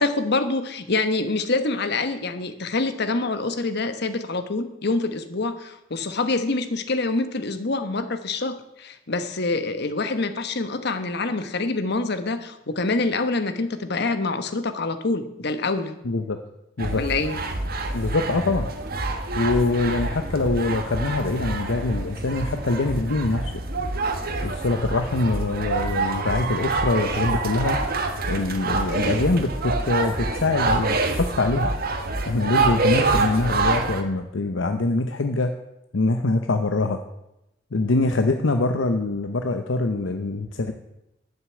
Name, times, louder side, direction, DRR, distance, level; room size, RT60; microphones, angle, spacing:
voice 1, 0.0-15.9 16.9-17.4, left 3 dB, 60° left, 10 dB, 1.1 m, -26 dB
voice 2, 16.0-16.4 16.8-17.0 17.9-18.7 19.3-23.5 24.4-27.8 28.3-31.7 32.3-35.6 35.9-37.0 37.7-40.7, left 2 dB, 80° left, 6 dB, 0.8 m, -24 dB
sound 1, 16.8-34.0, right 3 dB, 55° right, 1.5 m, -26 dB
12.5 x 6.7 x 8.5 m, 0.89 s
head